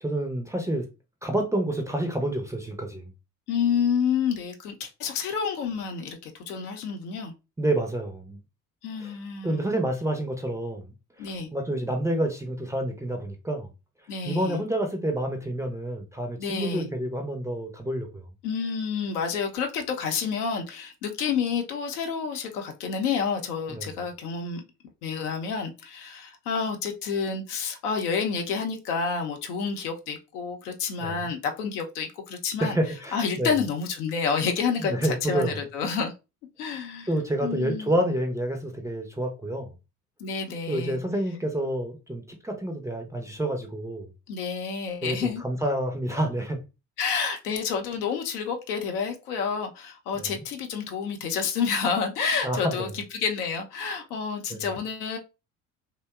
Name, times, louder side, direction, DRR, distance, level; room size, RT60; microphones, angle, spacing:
voice 1, 0.0-0.9 1.2-3.1 7.6-8.4 9.0-9.1 9.4-10.9 11.2-13.7 14.2-18.2 23.7-23.9 31.0-31.3 32.6-33.6 34.8-35.6 37.1-39.7 40.7-44.1 45.0-46.6 50.1-50.4 52.4-52.9 54.5-54.6, right 1 dB, 5° right, 0.4 m, -28 dB
voice 2, 3.5-7.3 8.8-9.7 11.2-11.5 14.1-14.6 16.4-16.9 18.4-24.6 25.0-32.8 33.1-36.1 36.6-37.1 37.4-37.9 40.2-41.0 44.3-45.4 47.0-55.2, left 6 dB, 80° left, 0.6 m, -29 dB
2.7 x 2.1 x 2.2 m
hypercardioid pair, 55°, 45 cm